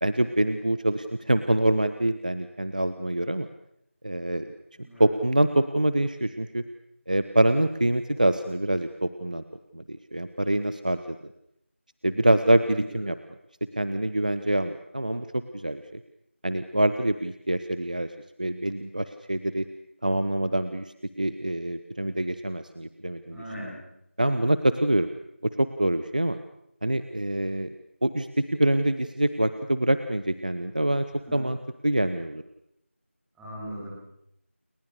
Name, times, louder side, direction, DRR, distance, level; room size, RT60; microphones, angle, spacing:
voice 1, 0.0-3.5 4.0-4.5 5.0-6.6 7.1-9.4 9.7-11.2 12.0-13.2 13.8-16.0 16.4-18.1 18.4-19.6 20.0-23.4 24.2-25.1 25.4-26.4 26.8-27.7 28.0-31.1 31.3-31.6 31.8-32.4, right 1 dB, 35° right, 11 dB, 1.1 m, -25 dB
voice 2, 23.3-23.7 31.3-31.4 33.4-34.0, equal, ahead, -13 dB, 4.5 m, -38 dB
29.5 x 22.0 x 6.7 m, 0.77 s
figure-of-eight pair, 175°, 7 cm